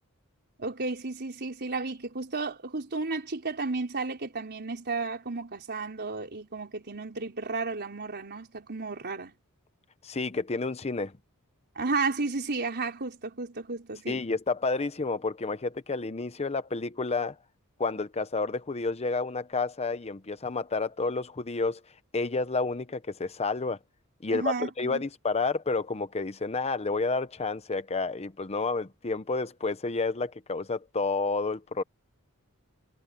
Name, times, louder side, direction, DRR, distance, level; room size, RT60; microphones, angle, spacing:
voice 1, 0.6-9.3 11.7-14.2 24.3-25.0, right 3 dB, 50° right, 4.2 m, -33 dB
voice 2, 10.0-11.1 14.1-17.4 17.8-21.8 22.1-23.8 24.2-31.8, left 3 dB, 30° left, 0.7 m, -30 dB
head